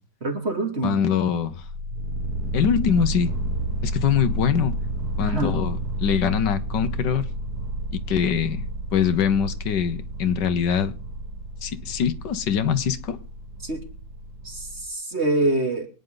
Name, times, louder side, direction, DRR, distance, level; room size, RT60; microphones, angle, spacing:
voice 1, 0.2-1.0 5.2-5.6 13.6-13.8 14.4-15.9, right 2 dB, 35° right, 3.3 m, -25 dB
voice 2, 0.8-1.6 2.5-3.3 3.8-4.7 5.2-7.3 7.9-8.7 8.9-10.9 11.6-13.2, left 8 dB, 80° left, 1.6 m, -23 dB
sound 1, 1.4-14.9, right 1 dB, 65° right, 2.2 m, -31 dB
24.0 x 9.8 x 3.9 m
omnidirectional pair, 1.9 m